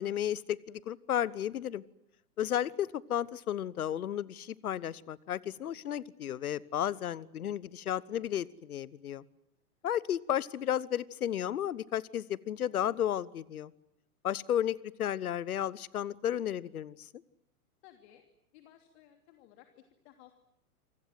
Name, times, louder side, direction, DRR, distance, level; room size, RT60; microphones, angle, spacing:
voice 1, 0.0-1.8 2.4-9.2 9.8-13.7 14.2-17.2, left 10 dB, 70° left, 21 dB, 1.2 m, -33 dB
voice 2, 17.8-18.2 18.5-20.4, left 12 dB, 45° left, 6 dB, 3.0 m, -58 dB
28.0 x 25.0 x 7.7 m, 0.78 s
hypercardioid pair, 110°, 45 cm